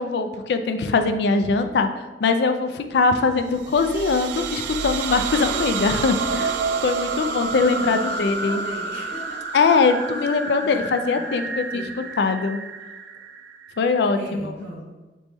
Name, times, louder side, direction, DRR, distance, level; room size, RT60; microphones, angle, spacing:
voice 1, 0.0-1.9 2.2-8.6 9.5-11.8 12.2-12.6 13.8-14.5, left 4 dB, 70° left, 8 dB, 0.4 m, -21 dB
sound 1, 3.5-14.1, right 5 dB, 80° right, 0.3 m, -29 dB
voice 2, 7.7-9.4 10.1-10.2 10.6-11.9 14.1-14.8, right 1 dB, 65° right, -8 dB, 1.4 m, -39 dB
4.2 x 3.0 x 3.4 m, 1.2 s
head